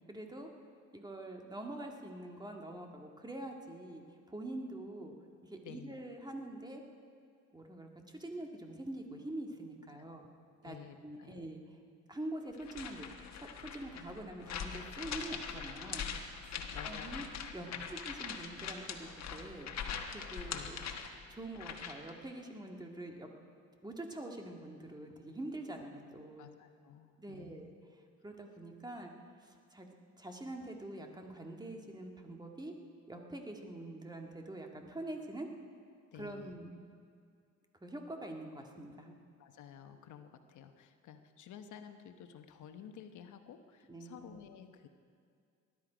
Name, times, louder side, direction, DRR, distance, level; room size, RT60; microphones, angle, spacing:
voice 1, 0.1-0.5 0.9-5.1 5.4-6.8 7.5-10.3 10.6-10.8 11.0-11.8 12.1-13.1 13.3-16.1 16.8-17.2 17.5-19.7 20.1-20.8 21.3-23.3 23.8-26.5 27.2-27.7 28.2-29.1 29.4-32.7 33.1-35.5 36.1-36.7 37.8-39.2 43.9-44.2, right 1 dB, 15° right, 2 dB, 1.9 m, -45 dB
voice 2, 5.6-6.0 9.9-10.2 10.6-11.4 16.5-17.2 17.7-17.9 20.5-20.7 26.4-27.6 36.1-36.6 39.4-44.9, left 8 dB, 80° left, 8 dB, 1.0 m, -52 dB
sound 1, 12.6-22.1, left 7 dB, 60° left, 1.3 m, -42 dB
19.5 x 12.0 x 5.1 m, 2.3 s
cardioid pair, 90°, 30 cm